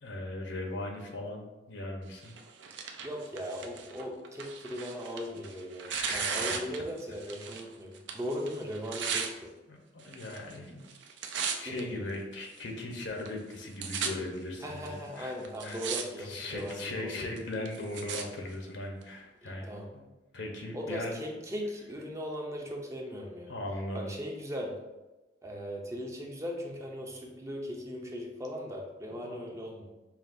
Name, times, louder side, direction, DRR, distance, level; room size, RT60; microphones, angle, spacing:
voice 1, 0.0-2.4 5.9-6.4 9.7-10.9 11.6-15.3 15.6-15.8 16.2-20.0 20.3-21.4 23.5-24.1 29.2-29.4, left 2 dB, 80° left, 1 dB, 0.8 m, -39 dB
Tearing, 2.2-7.7 7.9-9.3 10.0-10.6 10.8-11.8 12.4-12.5 13.3-13.4 13.5-14.1 14.9-15.0 15.4-16.0 16.3-16.8 17.4-18.2 19.0-19.1, right 6 dB, 75° right, 0.4 m, -36 dB
voice 2, 3.0-9.5 11.6-12.1 14.6-17.4 19.4-19.9 20.7-23.5 23.9-24.8 25.4-29.9, equal, 15° right, 0 dB, 0.5 m, -38 dB
5.8 x 2.2 x 2.6 m, 1.1 s
head